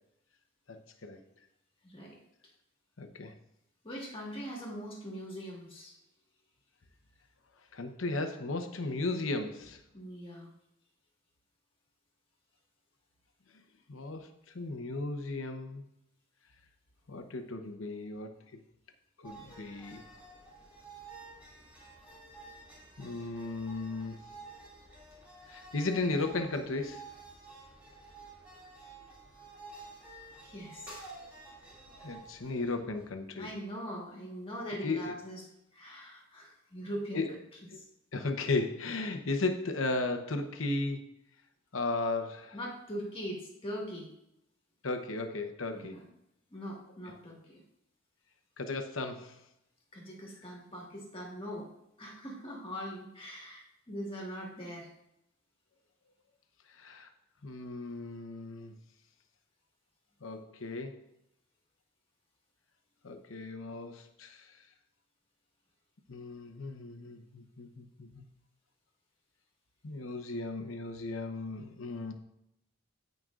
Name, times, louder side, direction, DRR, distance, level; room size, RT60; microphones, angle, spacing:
voice 1, 0.7-1.2 3.0-3.3 7.7-9.8 13.9-15.8 17.1-18.3 19.2-20.0 23.0-24.3 25.5-27.1 32.0-33.5 34.7-35.2 37.1-37.3 37.7-37.8 38.1-41.1 41.7-42.6 44.8-46.0 47.1-47.2 48.6-49.4 56.7-57.1 57.4-58.7 60.2-61.0 63.0-64.6 66.1-68.2 69.8-72.1, left 3 dB, 70° left, 7 dB, 0.9 m, -35 dB
voice 2, 1.8-2.2 3.8-5.9 9.9-10.5 30.4-31.0 33.3-35.4 35.7-37.2 42.5-44.1 45.7-46.0 46.5-47.6 49.9-51.7 52.0-54.9, equal, 25° left, -2 dB, 1.7 m, -41 dB
sound 1, 19.2-33.2, right 3 dB, 10° right, 2.4 m, -51 dB
15.0 x 5.3 x 2.5 m, 0.80 s
head